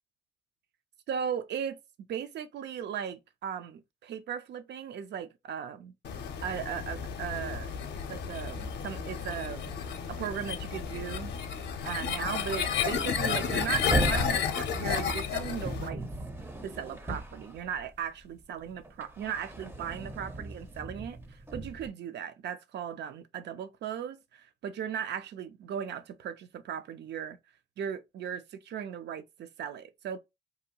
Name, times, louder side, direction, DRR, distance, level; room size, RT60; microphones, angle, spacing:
voice 1, 1.1-1.8 2.1-5.9 6.4-7.7 8.1-9.8 10.1-11.3 11.8-16.1 16.6-27.4 27.8-30.2, right 8 dB, 60° right, 0.5 m, -37 dB
sound 1, 6.0-15.9, left 7 dB, 60° left, 0.6 m, -32 dB
sound 2, 12.2-18.2 18.6-21.9, right 1 dB, 10° right, 0.5 m, -37 dB
2.7 x 2.2 x 2.7 m
cardioid pair, 90°, 20 cm